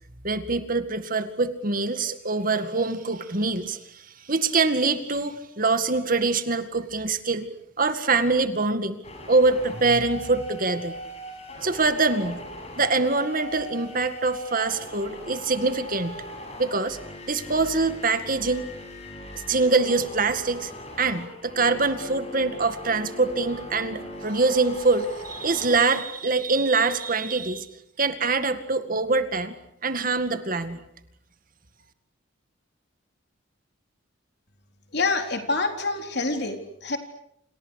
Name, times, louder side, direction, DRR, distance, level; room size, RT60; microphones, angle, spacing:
voice 1, 0.2-7.5 7.8-9.0 9.3-10.9 11.6-12.4 12.8-16.2 16.6-17.0 17.3-18.7 19.5-20.7 21.0-27.7 28.0-29.6 29.8-30.8, right 3 dB, 45° right, 9 dB, 2.1 m, -24 dB
sound 1, 9.0-25.9, equal, 35° left, 7.1 m, -40 dB
voice 2, 34.9-37.0, left 3 dB, 55° left, 5 dB, 4.0 m, -26 dB
30.0 x 27.5 x 6.6 m, 0.75 s
head